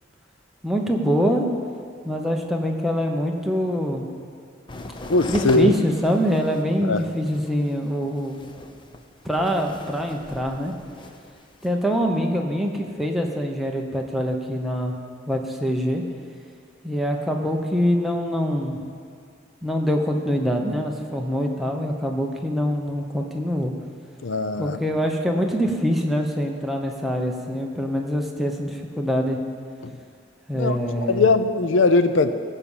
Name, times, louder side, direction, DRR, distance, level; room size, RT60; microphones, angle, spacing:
voice 1, 0.6-1.4 2.0-4.1 5.3-8.5 9.2-10.7 11.6-14.9 15.3-16.0 16.8-18.8 19.6-23.7 24.6-29.4 30.5-31.2, equal, ahead, 1 dB, 0.9 m, -24 dB
sound 1, 4.7-12.0, left 2 dB, 25° left, 0.6 m, -39 dB
voice 2, 5.1-5.7 6.8-7.0 24.2-24.8 29.8-29.9 30.5-30.8 31.1-32.3, left 3 dB, 70° left, 10 dB, 0.6 m, -20 dB
16.0 x 5.5 x 7.2 m, 2.2 s
head